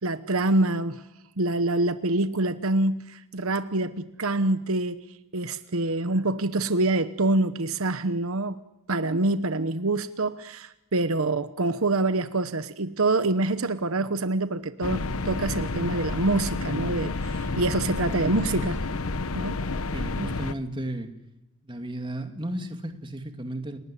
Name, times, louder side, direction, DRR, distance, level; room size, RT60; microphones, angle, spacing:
voice 1, 0.0-1.0 1.4-5.0 5.3-8.6 8.9-18.8 19.3-19.9 20.2-20.4, right 2 dB, 70° right, 1.1 m, -26 dB
sound 1, 14.8-20.5, left 3 dB, 75° left, 1.1 m, -30 dB
voice 2, 19.9-21.1 21.6-23.8, right 1 dB, 20° right, 2.3 m, -34 dB
29.5 x 19.0 x 9.9 m
head